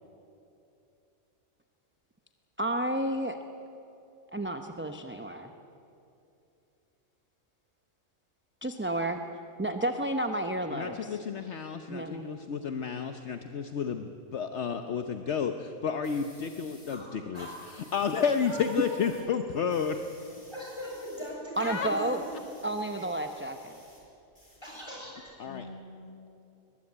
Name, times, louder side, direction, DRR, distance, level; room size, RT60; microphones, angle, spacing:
voice 1, 2.6-3.4 4.3-5.5 8.6-9.2 9.6-11.2 11.9-12.3 21.6-22.2 22.6-23.8, right 1 dB, 10° right, 5 dB, 0.8 m, -31 dB
voice 2, 10.7-20.0 21.6-21.9 25.4-25.7, left 6 dB, 60° left, 7 dB, 1.2 m, -31 dB
sound 1, 16.0-17.0 17.3-19.2 19.5-24.0 24.3-25.3, equal, 35° left, 6.1 m, -56 dB
voice 3, 18.4-19.3 20.5-22.2 22.9-23.1 24.6-25.1 25.4-26.1, equal, 20° left, -3 dB, 7.2 m, -41 dB
22.5 x 21.0 x 8.7 m, 2.7 s
omnidirectional pair, 1.4 m